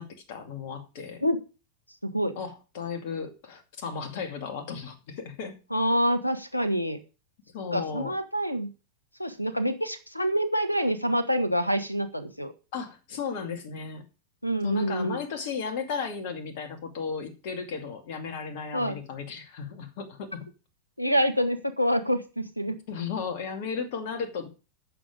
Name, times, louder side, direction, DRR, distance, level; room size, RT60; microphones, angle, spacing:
voice 1, 0.0-1.2 2.4-5.6 7.5-8.1 12.7-14.0 14.6-20.5 22.9-24.5, left 6 dB, 50° left, 7 dB, 2.4 m, -35 dB
voice 2, 2.0-2.4 5.7-7.0 7.7-8.7 9.2-12.5 14.4-15.2 18.7-19.0 21.0-22.8, equal, 90° left, 13 dB, 1.3 m, -26 dB
14.0 x 7.1 x 5.0 m, 0.33 s
figure-of-eight pair, 90°, 0 cm